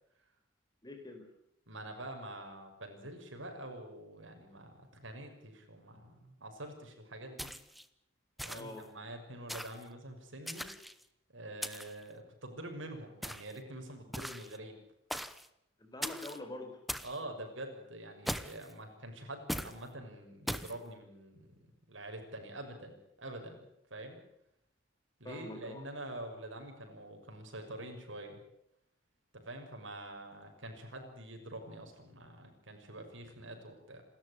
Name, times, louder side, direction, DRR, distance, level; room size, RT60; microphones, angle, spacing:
voice 1, 0.8-1.3 8.5-8.9 15.8-16.8 25.2-25.8, left 2 dB, 20° left, 5 dB, 4.7 m, -45 dB
voice 2, 1.7-7.5 8.4-10.7 11.3-14.8 17.0-21.5 21.9-24.2 25.2-28.4 29.3-34.0, right 1 dB, 90° right, 4 dB, 6.2 m, -46 dB
sound 1, 7.4-7.9 8.4-8.8 9.5-9.8 10.5-11.0 11.6-12.0 13.2-13.6 14.1-14.6 15.1-15.5 16.0-16.4 16.9-17.2 18.3-18.7 19.5-19.8 20.5-20.8, equal, ahead, 0.9 m, -39 dB
28.0 x 13.5 x 9.7 m, 0.76 s
head